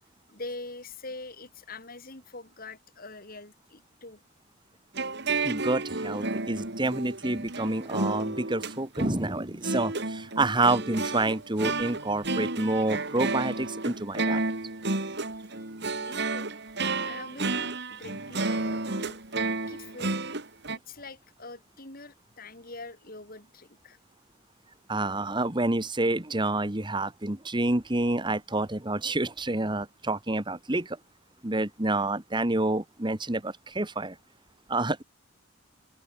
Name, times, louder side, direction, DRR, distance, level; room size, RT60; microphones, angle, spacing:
voice 1, 0.3-4.2 15.3-16.5 17.0-19.2 19.7-20.2 20.9-24.0, left 2 dB, 45° left, 5.5 m, -44 dB
sound 1, 4.9-20.8, right 3 dB, 55° right, 3.2 m, -31 dB
voice 2, 5.4-14.4 24.9-31.0 31.4-34.1 34.7-35.0, right 2 dB, 25° right, 1.6 m, -28 dB
head